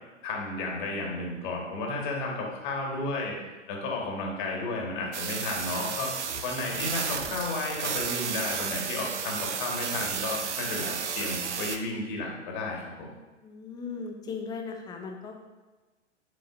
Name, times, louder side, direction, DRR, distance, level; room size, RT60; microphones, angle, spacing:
voice 1, 0.2-3.4 3.7-6.1 6.4-13.1, left 2 dB, 40° left, -1 dB, 1.7 m, -33 dB
sound 1, 5.1-11.8, right 7 dB, 70° right, 0.7 m, -33 dB
voice 2, 13.4-15.4, left 5 dB, 10° left, 3 dB, 0.5 m, -37 dB
9.7 x 4.8 x 2.6 m, 1.2 s
figure-of-eight pair, 105°, 37 cm